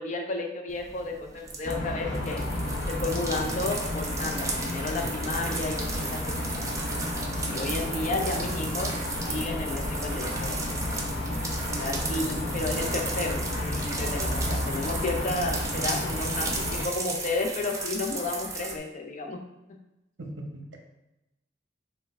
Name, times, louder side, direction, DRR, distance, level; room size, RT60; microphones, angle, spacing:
voice 1, 0.0-2.4 2.9-6.7 7.5-8.9 9.3-10.6 11.8-19.4, left 2 dB, 45° left, 3 dB, 0.5 m, -32 dB
sound 1, 0.7-18.7, right 3 dB, 15° right, 0.5 m, -35 dB
sound 2, 1.6-16.9, left 1 dB, 75° left, 0.9 m, -32 dB
voice 2, 20.2-20.8, right 1 dB, 80° right, 2 dB, 0.8 m, -40 dB
5.6 x 2.2 x 3.4 m, 0.91 s
head